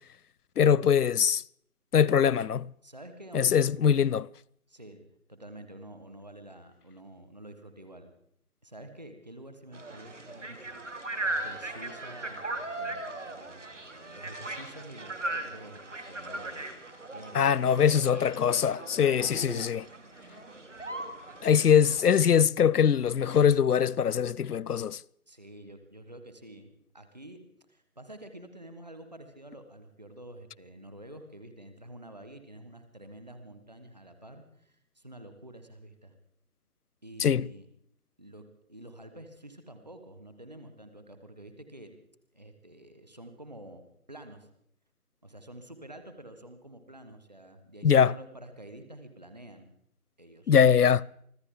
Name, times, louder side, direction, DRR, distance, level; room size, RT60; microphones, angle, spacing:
voice 1, 0.6-1.4 1.9-2.7 3.3-4.3 17.3-19.8 21.4-25.0 37.2-37.5 47.8-48.1 50.5-51.0, left 8 dB, 90° left, 0.5 m, -22 dB
voice 2, 2.8-3.7 4.7-5.0 5.3-8.1 8.6-16.7 17.1-18.9 19.2-19.7 25.3-27.4 27.7-36.1 37.0-37.7 38.2-41.9 42.3-44.5 45.2-49.7 50.2-50.5 50.9-51.1, right 1 dB, 30° right, 1.4 m, -48 dB
sound 1, 9.7-22.3, right 2 dB, 55° right, 2.0 m, -38 dB
24.5 x 14.5 x 3.8 m
figure-of-eight pair, 165°, 45 cm